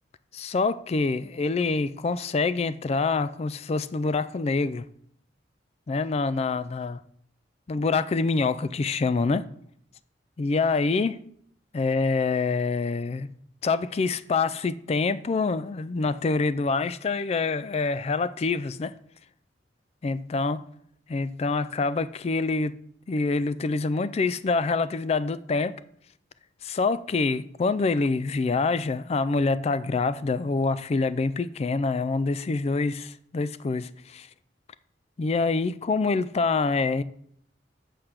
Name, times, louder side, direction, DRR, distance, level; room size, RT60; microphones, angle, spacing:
voice 1, 0.3-4.8 5.9-7.0 7.7-9.4 10.4-11.1 11.7-13.3 13.6-18.9 20.0-20.6 21.1-22.8 23.1-25.8 26.6-34.3 35.2-37.0, left 4 dB, 35° left, 0.3 m, -26 dB
7.9 x 5.0 x 5.8 m
head